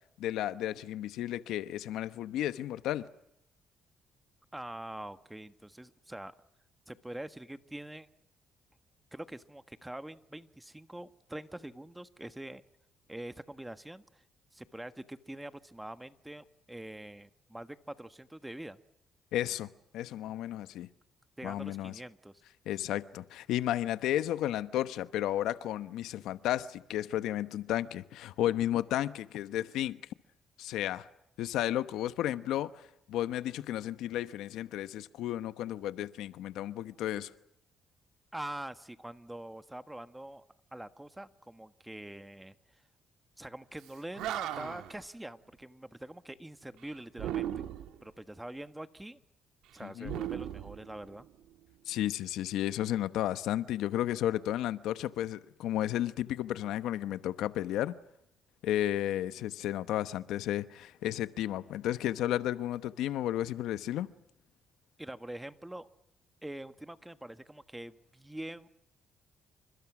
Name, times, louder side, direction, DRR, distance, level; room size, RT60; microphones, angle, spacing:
voice 1, 0.2-3.1 19.3-20.9 21.4-22.0 22.7-30.0 30.6-31.1 31.4-37.3 49.8-50.2 51.9-57.9 58.6-64.1, left 12 dB, 90° left, 1.1 m, -33 dB
voice 2, 4.5-6.3 6.9-8.1 9.1-12.6 13.1-14.2 14.5-18.8 21.4-22.3 38.3-40.4 40.7-42.5 43.4-47.5 48.0-49.2 49.7-51.3 65.0-65.9 66.4-68.7, right 1 dB, 10° right, 1.5 m, -44 dB
Animal, 43.8-43.9 44.1-45.0 47.1-48.0 50.0-51.3, right 11 dB, 90° right, 1.9 m, -37 dB
29.0 x 25.5 x 6.2 m
cardioid pair, 90°, 0 cm